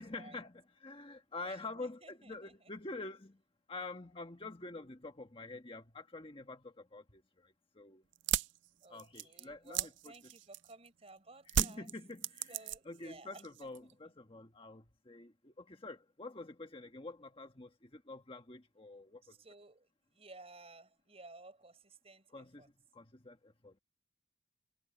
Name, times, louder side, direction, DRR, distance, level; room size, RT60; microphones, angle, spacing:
voice 1, 0.0-3.4 3.7-8.0 8.9-10.3 11.5-19.3 22.3-23.8, left 2 dB, 30° left, 1.4 m, -47 dB
voice 2, 1.4-2.5 8.8-11.9 12.5-13.7 19.2-22.7, right 2 dB, 30° right, 4.8 m, -56 dB
sound 1, 8.1-10.9 11.5-13.0 13.3-13.9, right 10 dB, 65° right, 0.4 m, -35 dB
head